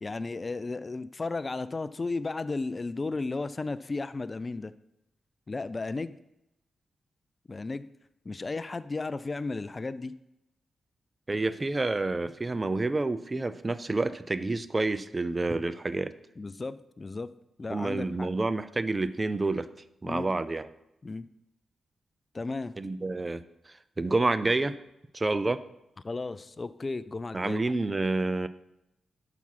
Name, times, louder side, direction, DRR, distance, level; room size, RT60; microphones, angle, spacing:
voice 1, 0.0-4.7 5.5-6.2 7.5-7.9 8.3-10.1 16.4-17.3 17.6-18.3 20.0-20.3 21.0-21.3 22.3-22.7 26.0-27.6, left 3 dB, 40° left, 15 dB, 0.4 m, -34 dB
voice 2, 11.3-16.1 17.7-19.7 20.0-20.7 22.8-23.4 23.7-24.8 25.1-25.6 27.3-28.5, right 2 dB, 30° right, 14 dB, 0.5 m, -28 dB
6.0 x 5.9 x 5.6 m, 0.87 s
supercardioid pair, 40°, 0 cm